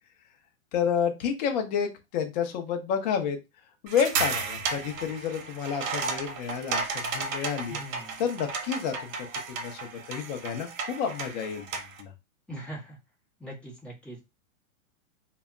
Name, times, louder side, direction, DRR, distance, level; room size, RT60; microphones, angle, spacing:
voice 1, 0.7-3.4 3.8-7.8 8.2-12.1, left 7 dB, 35° left, 5 dB, 0.5 m, -30 dB
sound 1, 3.9-12.0, right 4 dB, 70° right, 0.9 m, -33 dB
voice 2, 7.7-8.2 12.5-13.0 13.4-14.2, right 1 dB, 5° left, -4 dB, 0.7 m, -41 dB
2.1 x 2.0 x 3.5 m, 0.24 s
hypercardioid pair, 140°, 42 cm